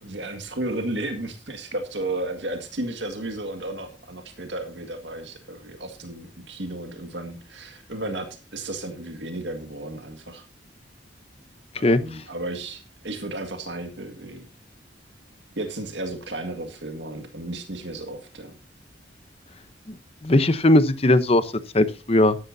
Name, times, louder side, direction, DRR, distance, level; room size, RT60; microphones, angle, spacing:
voice 1, 0.0-10.4 11.8-14.5 15.6-18.6, right 2 dB, 80° right, 6 dB, 1.9 m, -33 dB
voice 2, 11.8-12.2 19.9-20.0 20.2-22.4, left 1 dB, 35° left, 12 dB, 0.8 m, -19 dB
13.5 x 11.5 x 2.7 m, 0.31 s
head